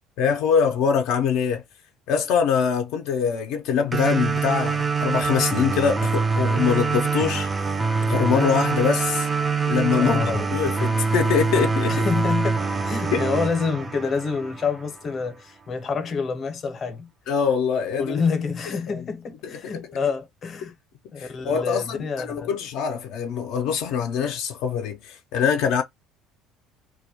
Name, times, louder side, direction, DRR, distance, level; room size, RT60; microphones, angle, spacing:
voice 1, 0.2-1.6 2.1-7.5 8.0-9.3 9.7-10.2 10.5-11.9 13.1-13.3 17.3-18.2 18.9-19.0 19.6-19.8 21.2-25.8, left 7 dB, 70° left, 0.4 m, -23 dB
sound 1, 3.9-14.9, right 4 dB, 15° right, 0.3 m, -24 dB
voice 2, 9.9-10.6 11.9-17.1 18.0-20.7 21.1-22.6, left 5 dB, 35° left, 0.7 m, -27 dB
2.2 x 2.1 x 2.7 m
cardioid pair, 140°, 0 cm